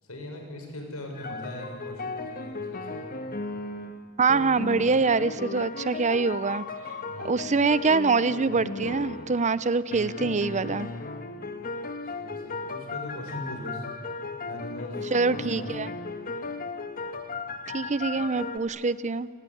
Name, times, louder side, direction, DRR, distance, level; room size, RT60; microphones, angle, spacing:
voice 1, 0.0-3.0 7.0-7.5 12.0-13.9 14.5-15.9, left 1 dB, 80° left, 3 dB, 6.9 m, -40 dB
sound 1, 1.1-4.0 4.3-9.6 9.9-18.6, left 3 dB, 40° left, 1.6 m, -36 dB
voice 2, 4.2-6.6 7.2-10.9 15.1-15.9 17.7-19.3, right 4 dB, 35° right, 16 dB, 0.7 m, -24 dB
29.5 x 19.5 x 9.9 m, 2.1 s
head